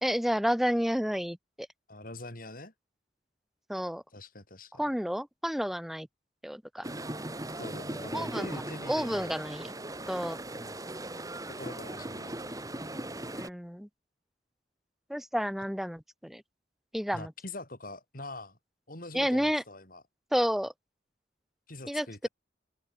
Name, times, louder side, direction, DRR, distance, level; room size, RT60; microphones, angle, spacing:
voice 1, 0.0-1.7 3.7-4.0 4.8-6.1 6.4-6.9 8.1-8.5 8.9-9.7 10.1-10.4 13.3-13.9 15.1-16.4 16.9-17.3 19.1-19.6 20.3-20.7 21.9-22.3, equal, ahead, 1.1 m, -30 dB
voice 2, 1.9-2.7 4.1-4.8 7.5-9.3 10.5-10.8 11.5-12.6 17.1-18.6 18.9-20.0 21.7-22.3, left 2 dB, 50° left, 5.8 m, -44 dB
sound 1, 6.8-13.5, right 1 dB, 20° right, 4.0 m, -39 dB
open air
head